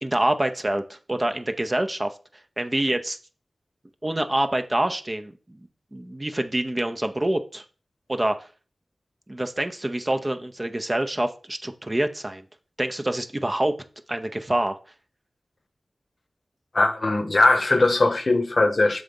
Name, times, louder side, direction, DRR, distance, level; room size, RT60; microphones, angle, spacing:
voice 1, 0.0-2.1 2.6-3.2 4.0-5.3 5.9-7.6 8.1-8.5 9.3-12.4 12.8-13.7 14.1-14.8, right 1 dB, 25° right, 0.6 m, -26 dB
voice 2, 16.7-19.0, left 2 dB, 50° left, 0.8 m, -20 dB
6.9 x 3.8 x 5.2 m
wide cardioid pair, 70°, 0 cm